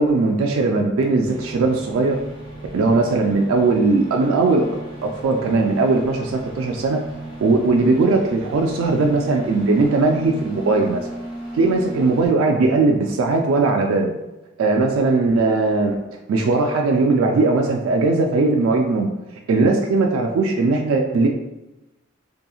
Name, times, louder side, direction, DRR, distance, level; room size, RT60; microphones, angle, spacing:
voice 1, 0.0-2.2 2.7-4.7 5.0-7.0 7.4-11.1 11.5-14.1 14.6-16.0 16.3-19.1 19.5-21.3, right 3 dB, 90° right, 2 dB, 0.3 m, -19 dB
sound 1, 1.2-12.3, right 1 dB, 10° right, 1.3 m, -36 dB
2.8 x 2.6 x 2.3 m, 1.0 s
head